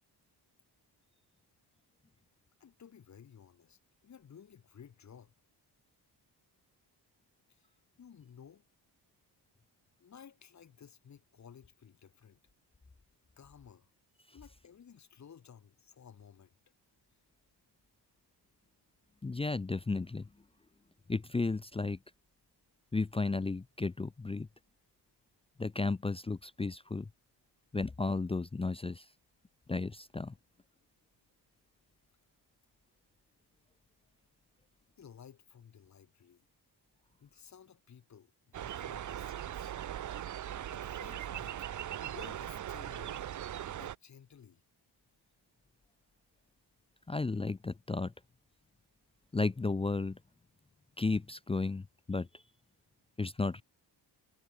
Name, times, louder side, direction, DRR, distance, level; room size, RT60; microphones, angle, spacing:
voice 1, 2.6-5.3 7.5-7.7 8.0-8.6 10.0-12.4 13.4-13.9 14.3-16.5 35.0-36.5 37.2-39.7 40.7-41.7 42.0-43.3 43.7-44.6, left 7 dB, 40° left, 2.1 m, -55 dB
voice 2, 19.2-20.3 21.1-22.0 22.9-24.5 25.6-27.1 27.7-29.0 29.7-30.3 47.1-48.1 49.3-50.2 51.0-52.3 53.2-53.6, left 3 dB, 15° left, 0.6 m, -33 dB
sound 1, 38.5-43.9, right 11 dB, 45° right, 0.6 m, -40 dB
wide cardioid pair, 175°, 42 cm